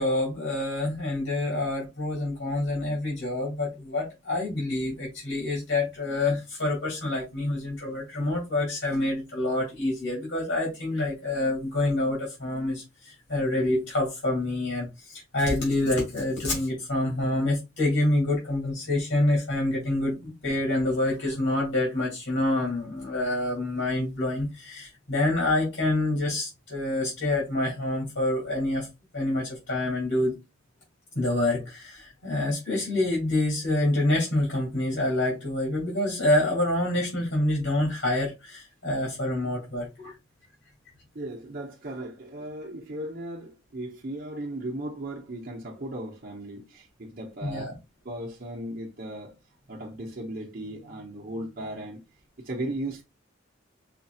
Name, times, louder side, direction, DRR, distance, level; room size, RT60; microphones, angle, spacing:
voice 1, 0.0-28.9 29.1-30.4 31.1-40.1 47.4-47.7, left 1 dB, 80° left, 2.5 m, -27 dB
voice 2, 41.1-47.8 48.0-49.3 49.7-52.0 52.4-53.0, right 1 dB, 50° right, 0.8 m, -36 dB
5.8 x 2.8 x 2.3 m
head